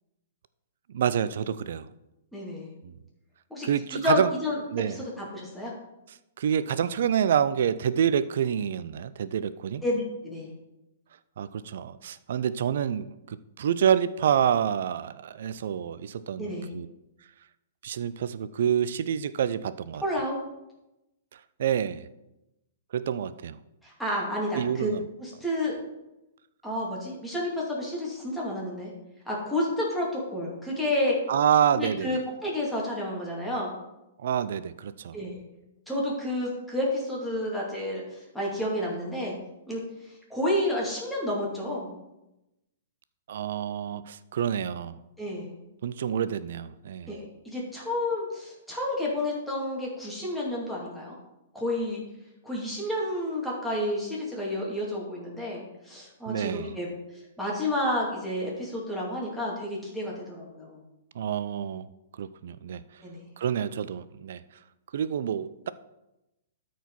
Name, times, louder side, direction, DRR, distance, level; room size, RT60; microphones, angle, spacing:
voice 1, 0.9-1.9 2.8-2.9 3.6-4.3 4.7-5.0 6.4-9.8 11.4-16.9 17.8-20.0 21.6-22.0 22.9-23.6 24.5-25.1 31.3-32.2 34.2-35.2 43.3-45.0 45.8-47.1 56.3-56.7 61.2-61.9 62.2-62.8 63.4-64.4 64.9-65.7, right 9 dB, 60° right, 16 dB, 0.4 m, -27 dB
voice 2, 2.3-2.7 3.5-4.6 4.9-5.7 9.8-10.5 16.4-16.7 20.0-20.4 23.8-24.9 25.2-25.8 26.6-28.9 29.3-31.2 31.7-33.7 35.1-35.4 35.9-39.3 39.7-41.9 45.2-45.5 47.1-51.1 51.5-52.0 52.4-56.9 57.4-60.8 63.0-63.3, left 1 dB, ahead, -5 dB, 2.6 m, -30 dB
13.0 x 4.7 x 4.1 m, 0.94 s
figure-of-eight pair, 110°, 0 cm